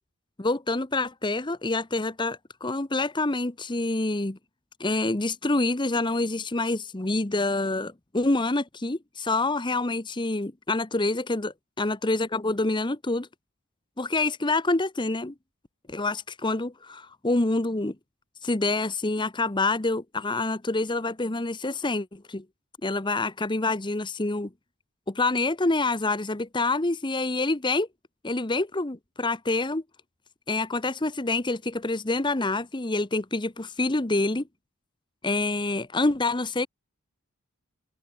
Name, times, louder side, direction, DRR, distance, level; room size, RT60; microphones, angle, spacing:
voice 1, 0.4-4.4 4.8-13.3 14.0-15.3 15.9-17.9 18.4-22.4 22.8-24.5 25.1-27.9 28.2-29.8 30.5-34.4 35.2-36.7, left 2 dB, 20° left, 0.9 m, -27 dB
head